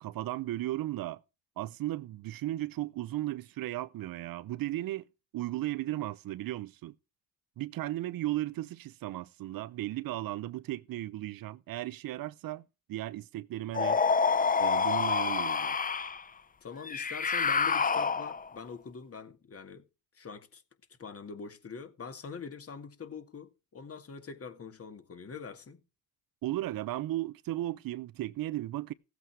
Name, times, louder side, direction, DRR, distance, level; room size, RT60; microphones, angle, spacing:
voice 1, 0.0-1.2 1.6-5.0 5.3-6.9 7.6-12.6 12.9-14.0 14.6-15.8 26.4-28.9, right 15 dB, 75° right, 0.7 m, -35 dB
sound 1, 13.7-16.2 16.9-18.5, left 5 dB, 25° left, 0.7 m, -27 dB
voice 2, 16.6-19.9 20.1-20.6 21.0-25.8, left 5 dB, 40° left, 2.2 m, -44 dB
16.0 x 8.1 x 4.8 m
cardioid pair, 90°, 35 cm